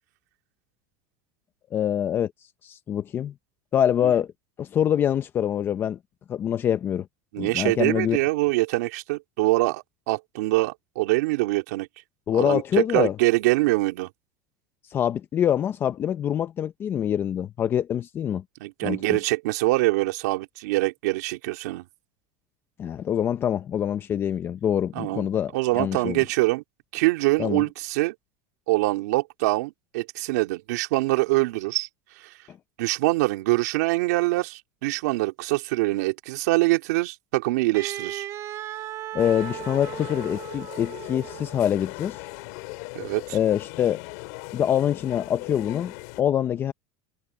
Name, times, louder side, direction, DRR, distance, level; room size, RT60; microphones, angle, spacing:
voice 1, 1.7-2.3 2.6-3.3 3.7-4.3 4.6-6.0 6.3-7.1 7.4-8.2 12.3-13.2 14.9-18.4 18.8-19.0 22.8-26.2 27.4-27.6 39.1-42.3 43.3-44.0 44.5-46.7, left 9 dB, 25° left, 0.7 m, -25 dB
voice 2, 7.3-11.9 12.3-14.1 18.6-21.8 24.9-25.3 25.5-26.6 26.9-28.1 28.7-31.9 32.2-32.3 32.8-38.2 42.9-43.4, right 21 dB, 75° right, 3.2 m, -24 dB
Wind instrument woodwind instrument, 37.7-41.8, right 13 dB, 35° right, 2.3 m, -36 dB
sound 1, 39.2-46.2, left 27 dB, 65° left, 2.7 m, -39 dB
supercardioid pair, 155°, 9 cm